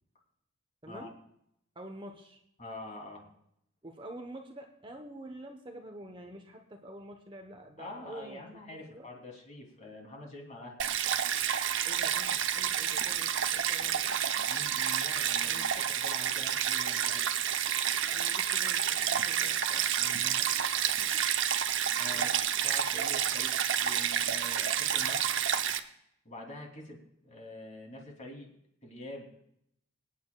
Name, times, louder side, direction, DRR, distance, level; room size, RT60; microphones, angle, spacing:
voice 1, 1.7-2.4 3.8-8.4 8.7-9.1 11.8-14.1 15.4-15.8 18.1-20.5 22.1-22.3, right 1 dB, 25° right, 4 dB, 1.0 m, -48 dB
voice 2, 2.6-3.2 7.8-10.8 14.4-17.2 20.0-20.4 22.0-22.3 22.6-25.4 26.2-28.5 28.8-29.4, left 1 dB, 35° left, 0 dB, 3.0 m, -46 dB
Stream, 10.8-25.8, right 9 dB, 65° right, 0.7 m, -29 dB
25.0 x 9.4 x 2.3 m, 0.75 s
head